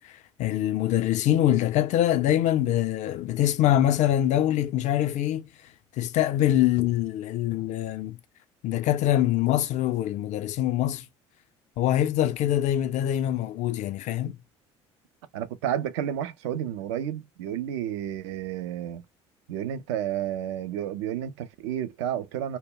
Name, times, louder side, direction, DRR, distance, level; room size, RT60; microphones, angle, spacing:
voice 1, 0.4-5.5 6.0-8.2 8.6-11.1 11.8-14.4, left 12 dB, 55° left, 0.4 m, -24 dB
voice 2, 15.3-19.0 19.5-22.6, right 10 dB, 80° right, 0.4 m, -31 dB
2.1 x 2.1 x 3.6 m
hypercardioid pair, 65°, 14 cm